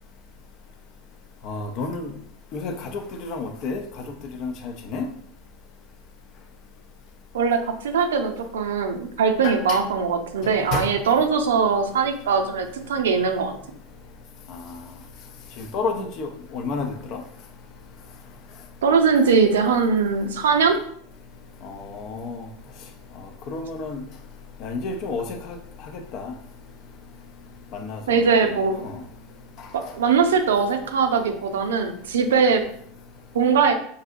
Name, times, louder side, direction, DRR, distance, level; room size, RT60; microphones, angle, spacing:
voice 1, 1.5-2.1 2.5-3.8 4.4-5.1 9.4-9.8 10.7-10.9 15.7-17.2 21.6-22.4 23.5-24.0 24.6-25.6 26.1-26.3 27.7-28.0 28.8-29.0, left 4 dB, 50° left, 0.6 m, -30 dB
voice 2, 7.3-13.5 18.8-20.8 28.1-28.8 29.7-32.6 33.3-33.8, right 5 dB, 85° right, 0.5 m, -21 dB
4.7 x 2.6 x 2.5 m
hypercardioid pair, 105°, 0 cm